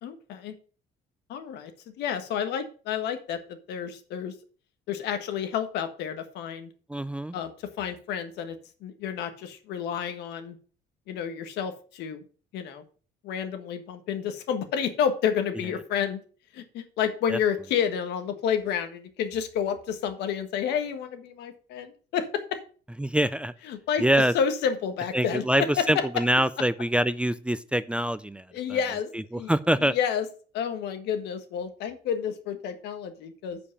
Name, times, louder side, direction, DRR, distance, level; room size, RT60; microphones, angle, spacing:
voice 1, 0.0-0.5 1.3-1.7 2.0-4.3 4.9-6.7 7.3-7.5 7.8-8.6 8.8-10.6 11.1-12.2 12.5-12.8 13.2-16.2 16.5-22.6 23.6-26.2 28.5-29.5 29.8-30.3 30.5-33.6, left 8 dB, 80° left, 8 dB, 1.5 m, -30 dB
voice 2, 6.9-7.3 17.3-17.4 23.0-23.5 24.0-24.3 25.1-28.4 29.3-29.9, right 1 dB, 5° right, 14 dB, 0.4 m, -24 dB
9.8 x 5.2 x 5.5 m, 0.39 s
cardioid pair, 110°, 17 cm